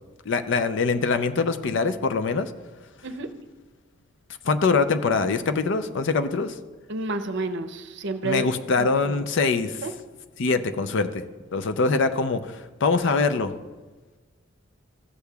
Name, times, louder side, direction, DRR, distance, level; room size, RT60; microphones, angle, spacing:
voice 1, 0.3-2.5 4.4-6.6 8.2-9.8 10.4-11.2 11.5-13.6, left 4 dB, 65° left, 10 dB, 0.5 m, -23 dB
voice 2, 6.9-8.5 8.8-9.2 9.8-9.9, right 2 dB, 60° right, 8 dB, 0.6 m, -30 dB
14.0 x 8.2 x 2.3 m, 1.3 s
head